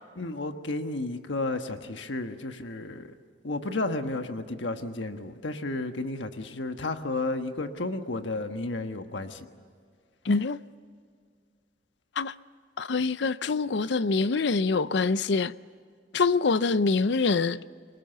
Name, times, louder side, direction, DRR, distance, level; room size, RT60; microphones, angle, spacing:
voice 1, 0.2-3.1 3.4-9.4, left 2 dB, 85° left, 1.4 m, -32 dB
voice 2, 10.3-10.6 12.2-12.3 12.8-15.5 16.1-17.6, left 4 dB, 70° left, 0.6 m, -25 dB
29.5 x 20.0 x 8.0 m
head